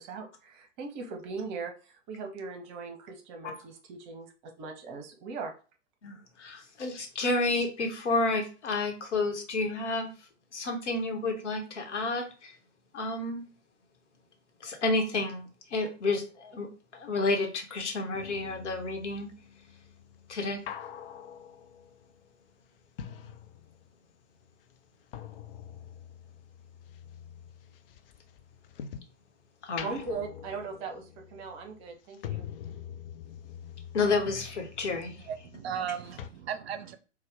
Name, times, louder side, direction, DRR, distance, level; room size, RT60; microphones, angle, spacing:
voice 1, 0.0-4.3 4.6-5.5 29.8-32.4, right 4 dB, 40° right, 0.9 m, -39 dB
voice 2, 6.0-10.1 10.5-12.6 12.9-13.4 14.6-16.7 16.9-19.3 20.3-20.6 29.6-30.0 33.9-35.3, left 3 dB, 65° left, 1.1 m, -30 dB
sound 1, 18.1-24.1 24.4-29.2 29.6-35.9 36.2-36.3, left 9 dB, 50° left, 0.4 m, -45 dB
voice 3, 35.0-37.0, right 8 dB, 55° right, 0.5 m, -36 dB
4.1 x 2.3 x 3.4 m
figure-of-eight pair, 90°, 37 cm